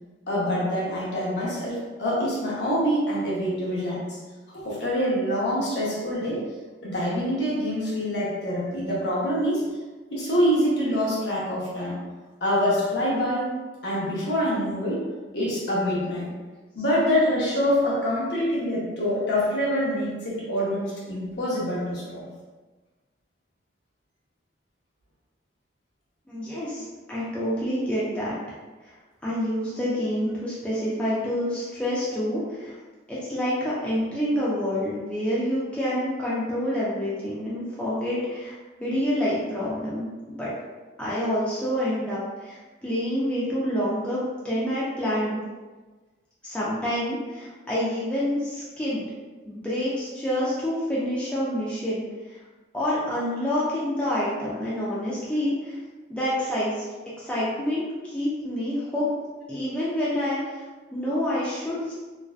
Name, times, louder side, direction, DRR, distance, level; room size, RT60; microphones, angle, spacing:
voice 1, 0.3-4.2 4.5-6.4 6.8-9.6 10.1-12.0 12.4-13.5 13.8-15.0 15.3-16.3 16.7-22.3, equal, 65° left, -6 dB, 0.8 m, -25 dB
voice 2, 26.3-28.4 28.8-28.9 29.2-32.8 33.1-40.5 41.0-45.4 46.4-49.0 49.4-52.4 52.7-55.8 56.1-56.8 57.2-59.1 59.5-60.6 60.9-61.9, equal, 5° left, -9 dB, 0.4 m, -27 dB
2.5 x 2.1 x 2.3 m, 1.3 s
head